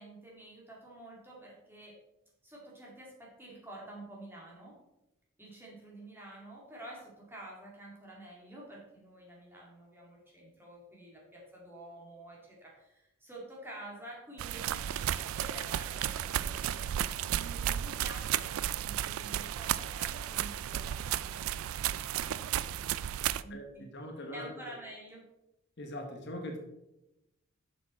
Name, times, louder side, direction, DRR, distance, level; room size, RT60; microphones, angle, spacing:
voice 1, 0.0-2.0 2.4-4.8 5.4-23.9 24.3-25.2, right 1 dB, 10° right, -4 dB, 2.1 m, -49 dB
sound 1, 14.4-23.4, right 11 dB, 70° right, 0.3 m, -33 dB
voice 2, 23.5-24.5 25.8-26.6, equal, 50° left, 2 dB, 1.0 m, -41 dB
7.3 x 6.2 x 4.3 m, 0.91 s
head